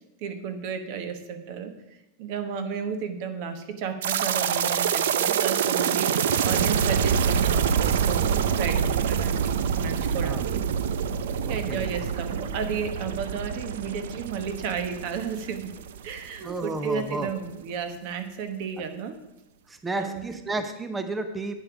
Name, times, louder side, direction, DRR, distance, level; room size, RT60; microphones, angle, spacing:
voice 1, 0.2-1.7 2.2-9.4 9.8-10.6 11.4-15.7 16.0-19.2 19.9-20.2, right 6 dB, 50° right, 9 dB, 1.2 m, -33 dB
sound 1, 4.0-16.4 16.6-16.7 17.3-17.4, right 7 dB, 85° right, 0.6 m, -26 dB
voice 2, 11.4-12.1 16.4-17.3 19.7-21.5, right 2 dB, 10° right, 8 dB, 0.6 m, -32 dB
10.5 x 8.7 x 4.9 m, 0.92 s
supercardioid pair, 160°, 0 cm